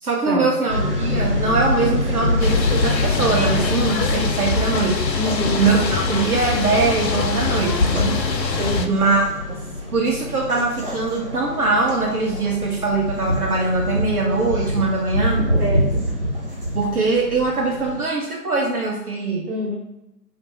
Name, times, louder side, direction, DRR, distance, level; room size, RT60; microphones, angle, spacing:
voice 1, 0.0-5.1 5.6-8.2 8.9-9.6 9.9-15.5 16.7-19.5, right 3 dB, 60° right, -1 dB, 0.6 m, -22 dB
sound 1, 0.7-18.0, left 2 dB, 40° left, 0.4 m, -28 dB
sound 2, 2.4-8.9, left 4 dB, 90° left, 0.6 m, -23 dB
sound 3, 2.8-16.9, right 1 dB, 35° right, 0.9 m, -29 dB
voice 2, 5.1-5.6 8.6-9.0 15.6-16.0 19.5-19.8, equal, 75° right, -2 dB, 1.0 m, -25 dB
3.1 x 2.5 x 3.0 m, 0.92 s
figure-of-eight pair, 150°, 49 cm